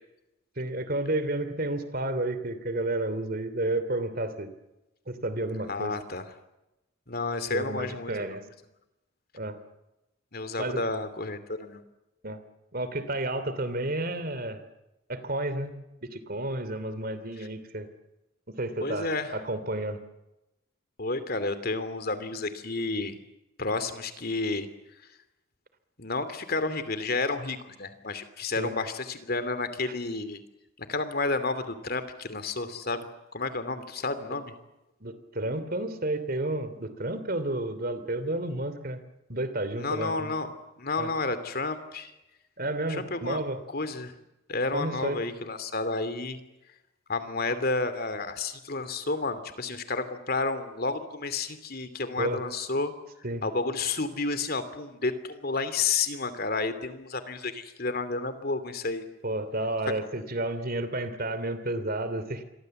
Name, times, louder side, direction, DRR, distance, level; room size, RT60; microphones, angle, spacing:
voice 1, 0.6-4.5 5.1-6.0 7.5-8.4 9.3-9.6 10.6-10.8 12.2-12.4 12.7-14.6 15.1-15.7 16.0-17.9 18.6-20.0 28.6-28.7 35.0-39.0 39.3-40.3 41.0-41.1 42.6-43.6 44.7-45.2 52.2-52.4 53.2-53.4 59.2-62.4, right 1 dB, 45° right, 12 dB, 2.9 m, -31 dB
voice 2, 5.7-6.2 7.1-8.1 10.3-11.8 17.4-17.5 18.8-19.3 21.0-23.2 23.6-24.7 26.0-30.4 30.8-34.5 39.8-42.1 42.9-43.4 43.7-44.1 44.5-46.4 47.1-52.9 53.4-59.0, left 3 dB, 50° left, 11 dB, 2.8 m, -31 dB
28.0 x 23.0 x 7.9 m, 0.94 s
head